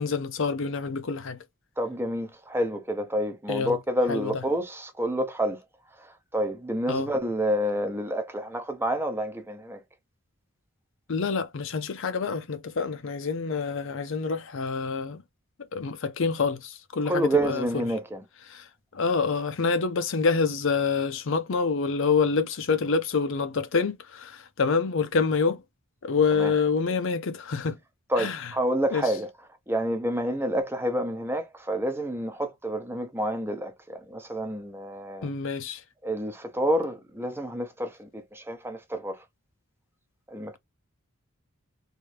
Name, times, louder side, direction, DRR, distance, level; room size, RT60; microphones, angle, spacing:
voice 1, 0.0-1.4 3.5-3.8 4.1-4.4 6.9-7.1 11.1-15.2 15.7-17.8 18.5-18.6 18.9-25.6 26.0-27.8 28.2-28.5 28.9-29.0 35.2-35.8, left 5 dB, 65° left, 0.6 m, -27 dB
voice 2, 1.8-5.6 6.0-9.8 17.1-18.2 26.3-26.5 28.1-29.3 29.7-35.3 36.0-39.2 40.3-40.6, right 1 dB, 10° right, 0.7 m, -29 dB
3.2 x 2.7 x 3.2 m
head